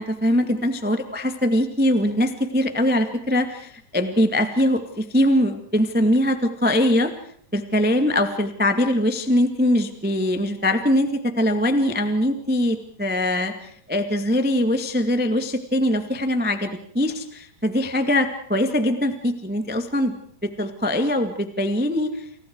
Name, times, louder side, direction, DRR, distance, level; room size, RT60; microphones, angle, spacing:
voice 1, 0.0-7.1 7.5-16.7 16.9-20.2 20.6-22.1, left 1 dB, 15° right, 7 dB, 0.3 m, -22 dB
29.5 x 29.5 x 4.8 m, 0.63 s
omnidirectional pair, 4.6 m